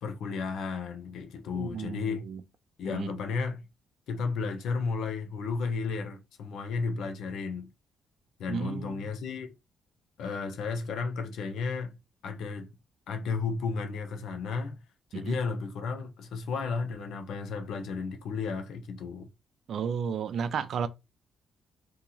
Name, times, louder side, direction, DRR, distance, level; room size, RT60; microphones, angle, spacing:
voice 1, 0.0-2.2 2.8-3.6 4.1-7.7 8.4-9.5 10.2-11.9 12.2-12.7 13.1-14.8 15.1-19.3, left 4 dB, 75° left, 0.9 m, -33 dB
voice 2, 1.5-2.4 2.9-3.1 8.5-9.0 15.1-15.4 19.7-20.9, right 7 dB, 60° right, 0.5 m, -33 dB
2.9 x 2.8 x 3.8 m
cardioid pair, 90°, 0 cm